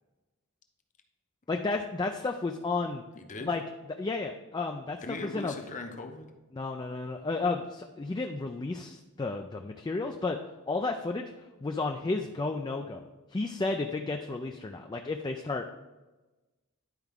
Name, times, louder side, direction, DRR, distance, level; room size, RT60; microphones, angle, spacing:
voice 1, 1.5-3.0 3.4-3.6 4.0-5.5 6.5-10.4 10.7-11.3 11.6-13.0 13.3-15.7, left 3 dB, 20° left, 4 dB, 0.3 m, -32 dB
voice 2, 3.1-3.5 5.0-6.3, left 3 dB, 35° left, 4 dB, 0.8 m, -39 dB
11.0 x 4.6 x 3.6 m, 1.1 s
head